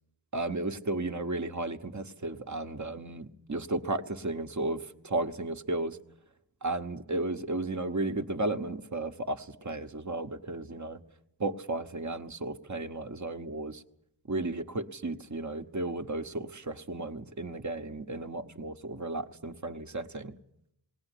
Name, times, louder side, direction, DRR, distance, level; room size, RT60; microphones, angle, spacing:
voice 1, 0.3-6.0 6.6-11.0 11.4-13.8 14.3-20.4, right 2 dB, 40° right, 8 dB, 1.2 m, -34 dB
19.5 x 18.0 x 9.9 m, 0.78 s
wide cardioid pair, 50°, 45 cm